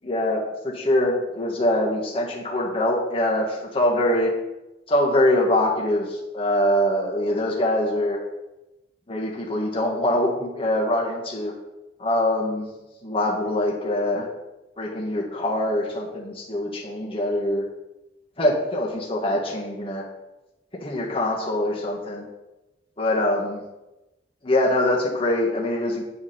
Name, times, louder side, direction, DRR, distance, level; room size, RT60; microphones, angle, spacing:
voice 1, 0.0-4.3 4.9-8.2 9.1-11.5 12.0-12.7 13.0-14.3 14.8-17.6 18.4-20.0 20.8-22.3 23.0-23.6 24.4-26.0, left 1 dB, 30° left, -2 dB, 1.6 m, -23 dB
8.6 x 4.9 x 5.7 m, 1.0 s
head